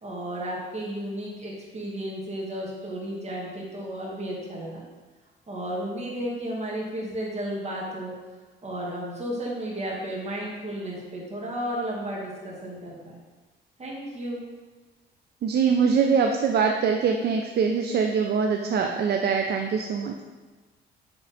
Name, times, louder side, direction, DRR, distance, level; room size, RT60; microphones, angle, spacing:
voice 1, 0.0-4.8 5.5-8.1 8.6-13.2 13.8-14.4, right 1 dB, 35° right, -3 dB, 1.8 m, -33 dB
voice 2, 15.4-20.2, right 6 dB, 55° right, 3 dB, 0.5 m, -23 dB
6.2 x 3.8 x 4.2 m, 1.3 s
cardioid pair, 90°, 20 cm